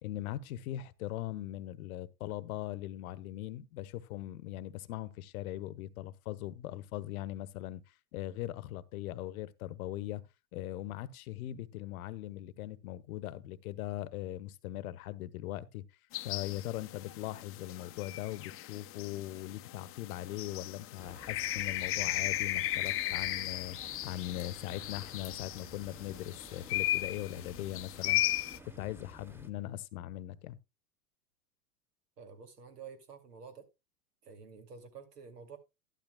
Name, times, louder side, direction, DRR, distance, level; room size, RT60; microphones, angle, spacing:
voice 1, 0.0-7.8 8.1-10.2 10.5-15.8 16.2-28.2 28.8-30.6, left 14 dB, 65° left, 1.0 m, -40 dB
sound 1, 16.1-28.6, left 15 dB, 30° left, 0.6 m, -36 dB
sound 2, 21.0-29.5, right 1 dB, 5° right, 0.9 m, -53 dB
voice 2, 32.2-33.7 34.2-35.6, right 6 dB, 85° right, 2.5 m, -50 dB
12.0 x 12.0 x 2.2 m
hypercardioid pair, 100°, 46 cm